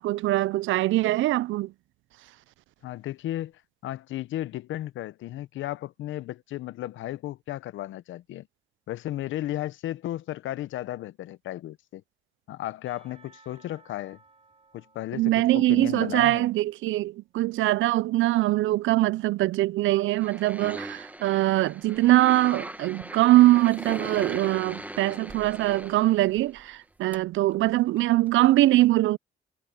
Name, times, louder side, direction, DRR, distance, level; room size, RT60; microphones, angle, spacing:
voice 1, 0.0-1.7 15.1-29.2, right 16 dB, 75° right, 0.4 m, -22 dB
voice 2, 2.8-3.5 3.8-8.5 8.9-12.0 12.5-14.2 14.7-16.5, left 14 dB, 80° left, 0.7 m, -34 dB
Percussion / Church bell, 12.9-16.8, right 4 dB, 30° right, 4.6 m, -59 dB
sound 1, 20.2-26.7 27.1-27.2 27.5-27.6 28.0-28.1 28.3-28.4, right 1 dB, 10° right, 1.7 m, -39 dB
cardioid pair, 90°, 20 cm